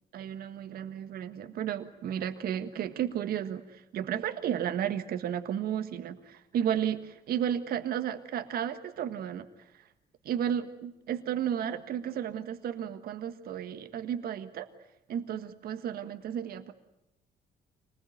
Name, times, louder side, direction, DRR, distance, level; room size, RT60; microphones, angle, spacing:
voice 1, 0.1-9.5 9.7-9.8 10.2-14.7 15.1-16.7, right 9 dB, 65° right, 8 dB, 1.6 m, -33 dB
25.5 x 20.0 x 9.3 m, 0.89 s
cardioid pair, 110°, 17 cm